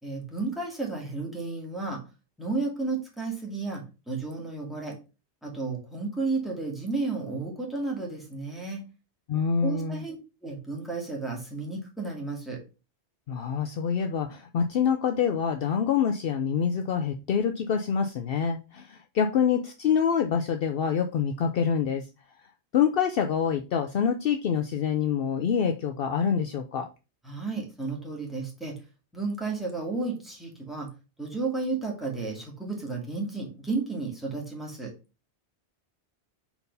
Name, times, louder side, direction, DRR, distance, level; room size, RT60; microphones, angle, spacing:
voice 1, 0.0-2.0 2.4-5.0 5.4-8.8 9.6-10.2 10.4-12.6 27.2-28.8 29.1-30.9 31.2-34.9, right 3 dB, ahead, -1 dB, 2.0 m, -32 dB
voice 2, 9.3-10.0 13.3-22.1 22.7-26.9, left 7 dB, 65° left, 6 dB, 0.7 m, -26 dB
4.5 x 4.1 x 5.3 m, 0.30 s
omnidirectional pair, 1.1 m